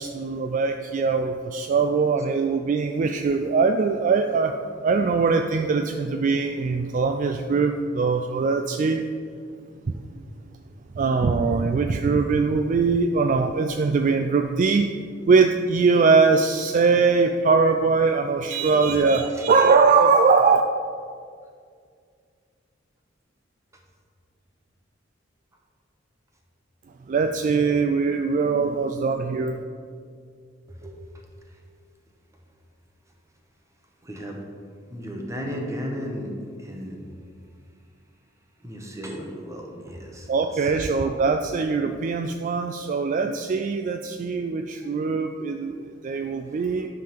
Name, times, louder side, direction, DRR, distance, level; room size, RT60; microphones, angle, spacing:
voice 1, 0.0-9.0 11.0-14.9 15.3-20.6 27.1-29.6 40.3-46.9, right 4 dB, 40° right, 5 dB, 0.3 m, -21 dB
voice 2, 18.6-18.9 19.3-19.5 30.7-31.0 34.1-34.4 34.9-36.3 36.6-37.0 38.6-40.3 41.0-41.1, equal, 15° right, 1 dB, 1.1 m, -35 dB
10.5 x 3.8 x 5.8 m, 2.2 s
head